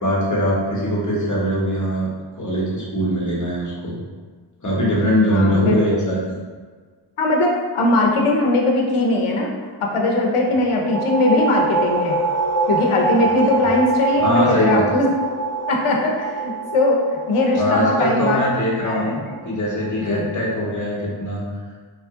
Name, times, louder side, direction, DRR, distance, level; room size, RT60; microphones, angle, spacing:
voice 1, 0.0-2.1 2.4-4.0 4.6-6.2 13.6-13.7 14.2-14.8 17.6-21.4, equal, 35° left, -5 dB, 1.0 m, -21 dB
voice 2, 5.3-6.0 7.2-9.5 9.8-12.2 12.7-15.1 15.7-18.4 18.8-19.4 20.0-20.3, left 2 dB, 80° left, 0 dB, 0.7 m, -20 dB
sound 1, 10.5-20.0, right 3 dB, 15° left, 1.0 m, -25 dB
2.9 x 2.4 x 3.5 m, 1.5 s
wide cardioid pair, 80°, 49 cm